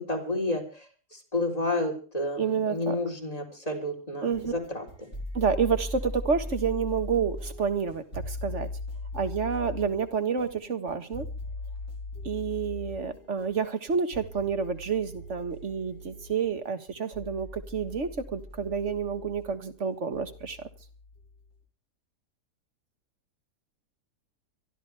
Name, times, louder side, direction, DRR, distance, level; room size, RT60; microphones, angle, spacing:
voice 1, 0.0-5.1, left 2 dB, 20° left, 3 dB, 4.0 m, -31 dB
voice 2, 2.4-3.0 4.2-4.5 5.4-8.7 9.1-11.3 12.2-20.7, right 6 dB, 45° right, 9 dB, 1.9 m, -29 dB
sound 1, 4.3-21.5, left 1 dB, 35° left, 4.1 m, -40 dB
25.0 x 13.0 x 3.4 m, 0.37 s
omnidirectional pair, 1.8 m